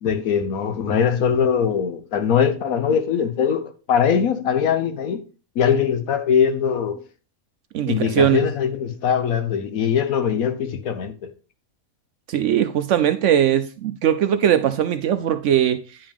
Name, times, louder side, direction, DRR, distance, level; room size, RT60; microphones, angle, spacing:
voice 1, 0.0-5.2 5.5-7.0 7.8-11.3, left 7 dB, 70° left, 1.3 m, -21 dB
voice 2, 7.7-8.4 12.3-16.0, right 9 dB, 65° right, 0.8 m, -20 dB
9.6 x 5.2 x 3.5 m
omnidirectional pair, 1.5 m